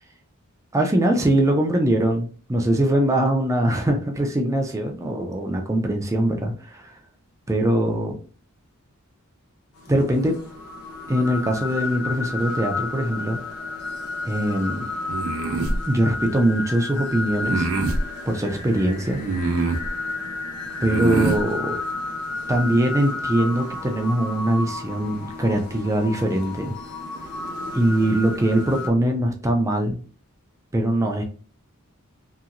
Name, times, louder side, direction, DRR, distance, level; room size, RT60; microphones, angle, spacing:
voice 1, 0.7-7.0 7.5-8.2 9.9-10.4 11.1-13.4 14.2-14.8 15.9-17.7 18.3-19.2 20.8-21.8 22.5-26.7 27.7-30.0 30.7-31.2, right 1 dB, 15° right, 3 dB, 0.3 m, -22 dB
sound 1, 9.7-28.9, left 3 dB, 80° left, 0.9 m, -32 dB
sound 2, 15.1-15.8 17.4-18.0 19.2-19.9 20.8-21.4, right 3 dB, 65° right, 0.6 m, -24 dB
2.9 x 2.8 x 2.4 m, 0.41 s
head